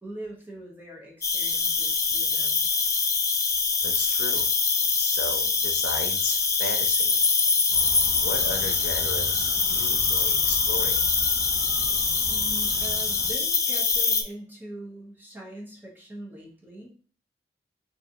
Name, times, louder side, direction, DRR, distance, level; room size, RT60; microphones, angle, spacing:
voice 1, 0.0-2.7 12.2-16.9, right 1 dB, 10° right, -2 dB, 1.0 m, -42 dB
Cricket, 1.2-14.2, left 4 dB, 20° left, 0.4 m, -24 dB
voice 2, 3.8-4.5 4.9-7.2 8.2-11.1, left 3 dB, 65° left, 4 dB, 0.7 m, -35 dB
Motor vehicle (road) / Siren, 7.7-13.3, equal, 60° right, 0.8 m, -40 dB
3.1 x 2.6 x 3.9 m, 0.39 s
head